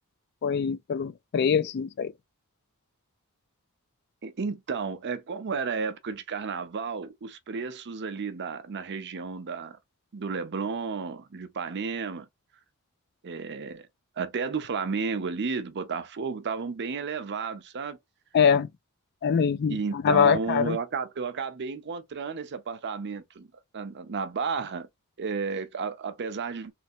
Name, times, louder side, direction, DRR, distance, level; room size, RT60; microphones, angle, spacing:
voice 1, 0.4-2.1 18.3-18.7 19.2-20.8, left 7 dB, 50° left, 0.3 m, -23 dB
voice 2, 4.2-9.8 10.1-12.3 13.2-13.9 14.2-18.0 19.7-23.5 23.7-24.9 25.2-26.7, right 5 dB, 50° right, 0.6 m, -32 dB
3.2 x 3.2 x 2.7 m
head